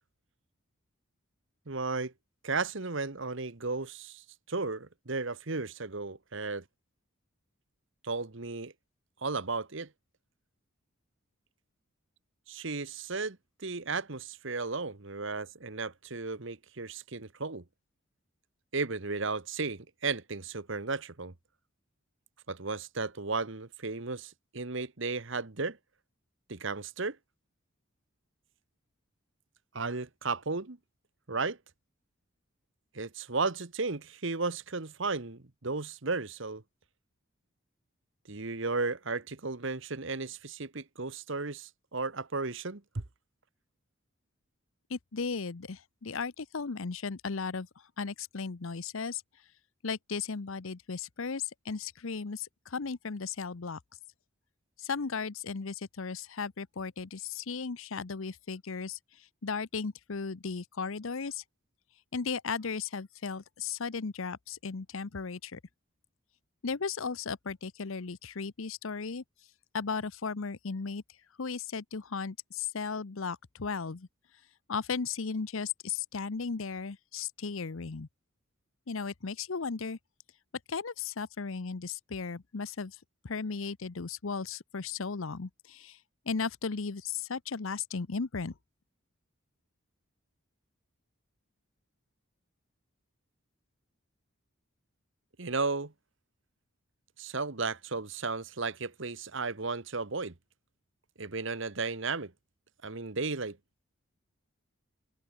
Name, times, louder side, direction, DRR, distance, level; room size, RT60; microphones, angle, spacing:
voice 1, 1.7-2.1 2.4-6.6 8.0-8.7 9.2-9.9 12.5-13.4 13.6-17.6 18.7-21.3 22.5-25.8 26.5-27.2 29.7-30.8 31.3-31.6 32.9-36.6 38.3-42.8 95.4-95.9 97.2-100.3 101.2-102.3 102.8-103.6, right 3 dB, 60° right, 1.3 m, -34 dB
voice 2, 44.9-47.7 48.0-49.2 49.8-53.8 54.8-59.0 59.4-61.4 62.1-65.6 66.6-69.2 69.7-71.0 71.4-74.1 74.7-78.1 78.9-80.0 80.7-82.9 83.2-86.0 86.3-88.5, left 5 dB, 70° left, 0.8 m, -36 dB
head